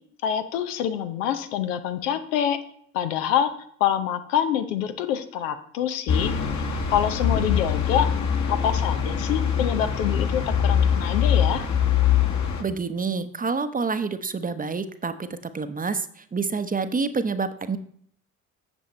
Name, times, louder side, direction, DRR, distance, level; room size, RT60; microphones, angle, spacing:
voice 1, 0.2-2.6 2.9-3.5 3.8-6.3 6.9-8.1 8.5-11.7, left 9 dB, 75° left, 9 dB, 0.8 m, -26 dB
sound 1, 6.1-12.6, left 8 dB, 45° left, 1.6 m, -23 dB
voice 2, 12.6-15.3 15.5-17.8, right 4 dB, 20° right, 11 dB, 0.8 m, -27 dB
8.1 x 6.9 x 4.3 m, 0.63 s
hypercardioid pair, 50°, 39 cm